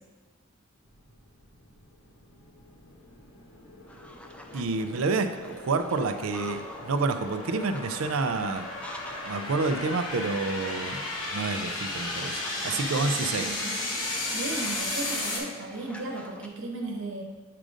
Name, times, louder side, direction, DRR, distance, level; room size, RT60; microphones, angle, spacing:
sound 1, 0.8-15.4, left 2 dB, 70° left, 1.2 m, -35 dB
sound 2, 3.9-16.5, left 1 dB, 5° left, 0.4 m, -47 dB
voice 1, 4.5-8.7 9.3-11.0 11.3-13.5, right 3 dB, 90° right, 8 dB, 0.5 m, -29 dB
voice 2, 13.3-13.8 14.3-17.2, right 2 dB, 65° right, 0 dB, 1.0 m, -35 dB
7.5 x 2.5 x 4.9 m, 1.3 s
head